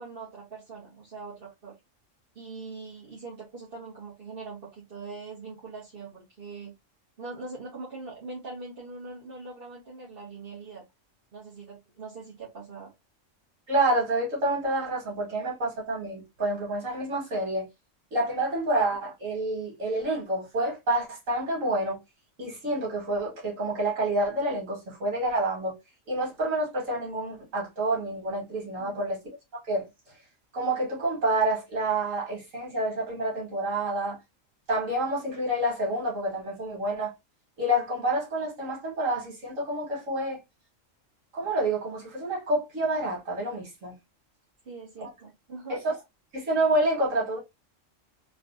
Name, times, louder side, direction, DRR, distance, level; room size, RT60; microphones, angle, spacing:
voice 1, 0.0-1.8 2.3-6.7 7.2-10.8 11.3-12.9 28.8-29.0 44.6-45.8, right 3 dB, 45° right, 1.2 m, -42 dB
voice 2, 13.7-17.7 18.1-22.0 22.4-25.7 26.1-29.2 29.7-29.9 30.5-34.2 34.7-37.1 37.6-40.4 41.3-43.9 45.0-45.1 45.7-45.8 46.3-47.4, right 1 dB, 85° right, 2.2 m, -28 dB
3.9 x 2.3 x 2.6 m
omnidirectional pair, 1.3 m